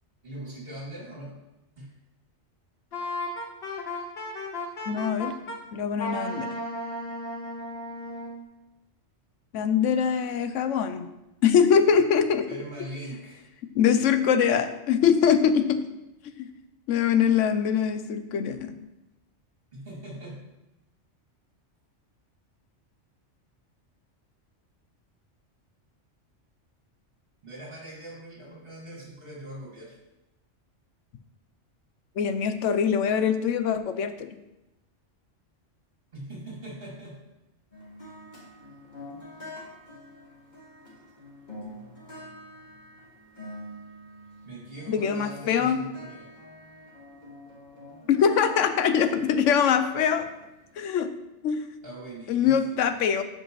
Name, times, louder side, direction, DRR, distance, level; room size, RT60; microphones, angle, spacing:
voice 1, 0.2-1.4 1.8-1.9 12.5-13.4 19.7-20.4 27.4-29.9 36.1-37.2 44.4-46.3 51.8-53.0, right 1 dB, 50° right, -5 dB, 2.7 m, -41 dB
Wind instrument woodwind instrument, 2.9-5.6 6.0-8.4, left 2 dB, 55° left, 1.2 m, -34 dB
voice 2, 4.9-5.3 5.7-6.5 9.5-11.1 11.4-12.5 13.7-15.8 16.4-16.5 16.9-18.7 32.2-34.3 44.9-45.8 48.1-50.2 50.8-51.1 51.4-51.6 52.3-53.2, left 7 dB, 85° left, 9 dB, 1.0 m, -23 dB
sound 1, 37.7-50.7, left 1 dB, 40° left, 2.1 m, -46 dB
12.5 x 5.0 x 3.1 m, 0.95 s
omnidirectional pair, 1.3 m